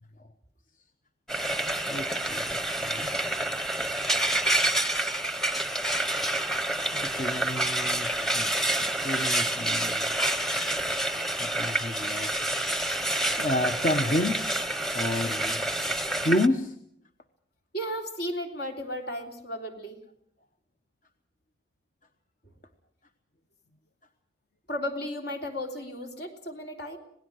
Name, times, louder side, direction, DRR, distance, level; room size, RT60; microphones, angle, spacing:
Frying (food), 1.3-16.5, right 1 dB, ahead, 0.9 m, -28 dB
voice 1, 1.9-3.4 6.9-8.5 8.8-10.1 11.4-12.3 13.2-14.5 14.9-15.6 16.2-16.7, left 1 dB, 45° left, 7 dB, 1.0 m, -30 dB
voice 2, 17.7-20.0 24.7-27.0, equal, 65° left, 3 dB, 3.5 m, -34 dB
26.5 x 18.5 x 6.3 m, 0.69 s
head